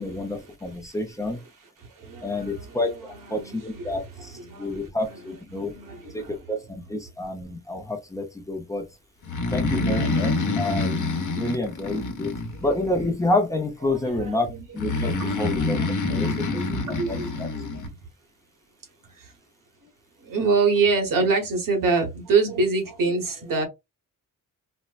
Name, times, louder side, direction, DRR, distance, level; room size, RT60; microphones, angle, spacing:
voice 1, 0.0-1.4 2.2-5.7 6.1-8.9 9.5-12.3 12.6-14.5 14.7-15.8 16.1-16.5 16.9-17.5, left 2 dB, 10° left, 0.6 m, -28 dB
voice 2, 1.8-6.4 9.4-10.0 12.4-12.6 13.8-14.6 15.0-17.3 17.8-17.9 19.2-19.3 20.2-23.6, right 4 dB, 75° right, 1.3 m, -27 dB
Breathing, 9.2-12.9 14.8-17.9, left 3 dB, 60° left, 0.9 m, -26 dB
4.2 x 2.1 x 2.4 m
wide cardioid pair, 135°, 34 cm